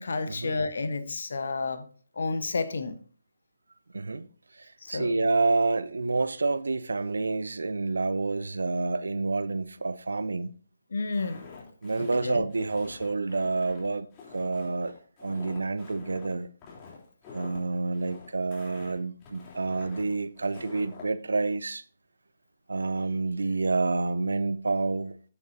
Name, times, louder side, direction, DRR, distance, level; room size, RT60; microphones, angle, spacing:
voice 1, 0.0-1.9 2.2-3.0 4.8-5.1 10.9-11.4 12.0-12.4, left 3 dB, 55° left, 1.1 m, -31 dB
voice 2, 3.9-4.3 4.9-10.5 11.8-14.1 14.3-14.9 15.2-16.5 17.3-21.8 22.7-25.1, right 3 dB, 65° right, 0.7 m, -28 dB
Walk footsteps, 11.1-21.1, left 5 dB, 20° left, 3.5 m, -47 dB
15.0 x 6.7 x 2.8 m
figure-of-eight pair, 140°, 0 cm